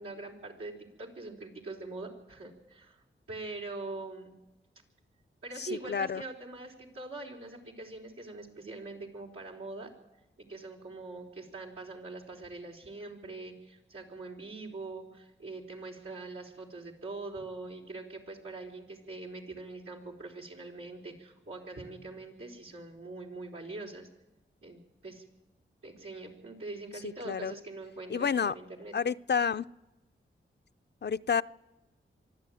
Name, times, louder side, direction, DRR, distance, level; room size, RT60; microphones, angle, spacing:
voice 1, 0.0-4.3 5.4-9.9 10.4-24.1 24.6-25.2 25.8-28.9, right 3 dB, 90° right, -2 dB, 4.1 m, -43 dB
voice 2, 5.6-6.2 27.0-27.5 28.1-28.5 28.9-29.6 31.0-31.4, left 6 dB, 55° left, 13 dB, 0.6 m, -30 dB
24.5 x 12.0 x 9.3 m, 1.0 s
cardioid pair, 40°, 21 cm